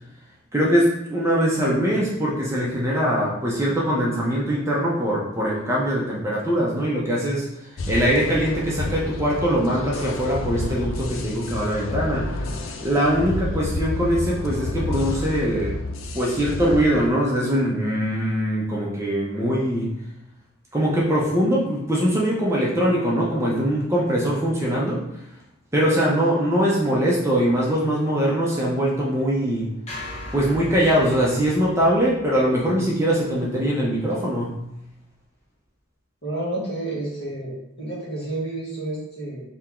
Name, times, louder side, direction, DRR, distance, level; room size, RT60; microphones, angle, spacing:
voice 1, 0.5-12.4 12.8-15.8 16.1-19.9 20.7-25.1 25.7-29.7 30.3-34.6, equal, 15° right, -5 dB, 0.6 m, -22 dB
sound 1, 7.8-17.1, left 2 dB, 75° left, 0.5 m, -30 dB
sound 2, 29.9-34.2, left 1 dB, 35° left, 0.8 m, -40 dB
voice 2, 36.2-39.4, right 2 dB, 50° left, -5 dB, 1.3 m, -30 dB
3.5 x 2.9 x 3.6 m, 0.84 s
head